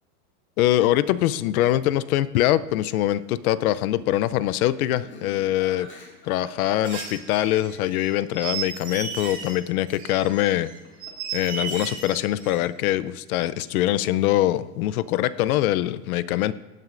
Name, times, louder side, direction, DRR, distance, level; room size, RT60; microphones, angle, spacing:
voice 1, 0.6-5.9 6.2-10.7 11.3-16.5, left 13 dB, 65° left, 17 dB, 0.6 m, -23 dB
Laughter, 5.0-7.7 10.5-11.3 11.5-12.1, left 4 dB, 25° left, 2.1 m, -44 dB
sound 1, 6.8-9.5 9.9-12.6, right 6 dB, 15° right, 2.4 m, -34 dB
16.5 x 9.1 x 2.5 m, 1.2 s
supercardioid pair, 160°, 47 cm